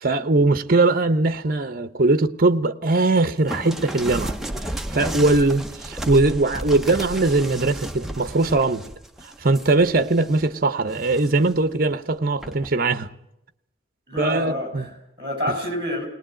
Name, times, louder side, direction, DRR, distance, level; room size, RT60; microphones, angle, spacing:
voice 1, 0.0-4.3 4.9-8.8 9.4-13.1 14.2-14.9 15.5-15.6, right 2 dB, 45° right, 0.9 m, -20 dB
sound 1, 3.5-10.5 10.9-11.6 12.4-12.7, right 1 dB, ahead, 0.8 m, -33 dB
voice 2, 14.1-16.1, left 1 dB, 25° right, 6.4 m, -28 dB
19.0 x 19.0 x 9.0 m
head